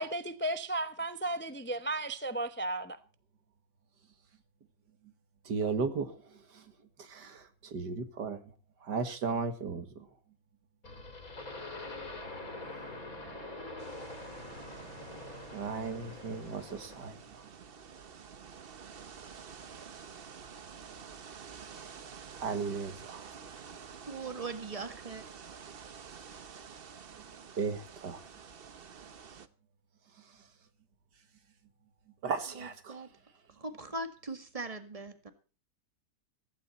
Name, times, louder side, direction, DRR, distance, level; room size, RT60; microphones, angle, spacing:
voice 1, 0.0-3.0, right 2 dB, 15° left, 0.4 m, -34 dB
voice 2, 5.4-6.7 7.0-8.4 8.8-10.1 15.5-17.5 22.4-23.3 27.6-28.3 30.2-30.4 32.2-33.0, right 5 dB, 80° right, 2.3 m, -36 dB
sound 1, 10.8-17.1, left 2 dB, 55° left, 3.7 m, -44 dB
sound 2, 13.8-29.5, right 6 dB, 40° right, 0.9 m, -49 dB
voice 3, 24.1-25.2 32.6-33.1 33.5-35.3, right 3 dB, 20° right, 1.8 m, -40 dB
16.0 x 16.0 x 4.2 m
omnidirectional pair, 1.8 m